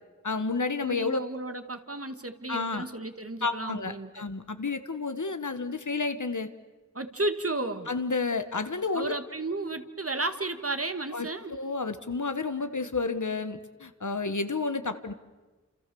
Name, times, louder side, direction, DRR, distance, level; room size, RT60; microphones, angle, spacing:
voice 1, 0.2-1.2 2.5-2.8 3.4-6.5 7.9-9.2 11.1-15.1, left 4 dB, 90° left, 10 dB, 1.4 m, -31 dB
voice 2, 0.8-4.2 6.9-7.9 8.9-11.5, right 2 dB, 50° right, 9 dB, 1.9 m, -33 dB
30.0 x 27.5 x 7.0 m, 1.2 s
wide cardioid pair, 40°, 29 cm